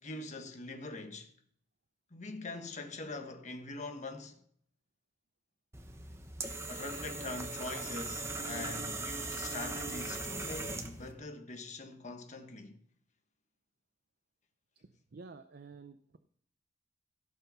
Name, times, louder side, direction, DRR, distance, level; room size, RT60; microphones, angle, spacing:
voice 1, 0.0-1.3 2.1-4.4 6.7-12.8, left 2 dB, 40° left, 1.3 m, -43 dB
sound 1, 5.7-11.1, right 2 dB, 15° right, 1.0 m, -39 dB
voice 2, 15.1-16.2, right 4 dB, 55° right, 0.6 m, -50 dB
16.0 x 5.8 x 5.5 m
head